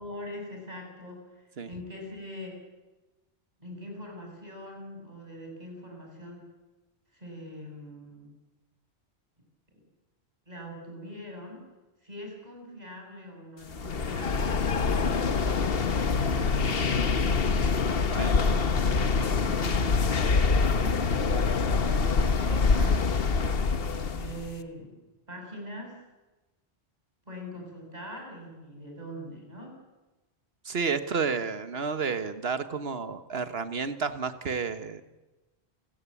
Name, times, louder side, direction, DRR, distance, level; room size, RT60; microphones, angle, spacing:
voice 1, 0.0-2.6 3.6-6.5 7.1-8.4 10.5-11.6 12.0-15.3 16.3-17.5 18.0-21.1 21.9-23.1 23.9-25.0 25.3-26.0 27.3-29.7, equal, 40° right, 1 dB, 7.2 m, -42 dB
sound 1, 13.7-24.5, left 4 dB, 65° left, 1.3 m, -25 dB
voice 2, 30.6-35.0, right 5 dB, 65° right, 10 dB, 1.6 m, -31 dB
29.5 x 16.0 x 8.6 m, 1.1 s
omnidirectional pair, 1.1 m